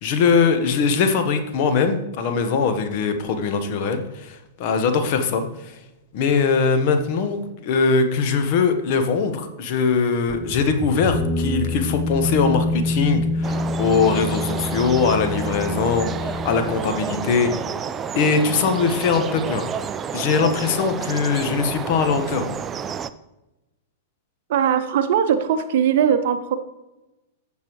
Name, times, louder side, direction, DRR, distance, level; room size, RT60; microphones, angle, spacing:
voice 1, 0.0-5.8 6.1-17.5 18.1-19.6 20.1-22.4, left 5 dB, 50° left, 7 dB, 1.2 m, -21 dB
sound 1, 10.3-17.7, left 2 dB, 5° left, 0.9 m, -27 dB
sound 2, 13.4-23.1, right 7 dB, 25° right, 0.4 m, -30 dB
voice 2, 24.5-26.6, right 8 dB, 55° right, 9 dB, 0.7 m, -20 dB
14.5 x 5.4 x 3.2 m, 0.99 s
figure-of-eight pair, 100°, 0 cm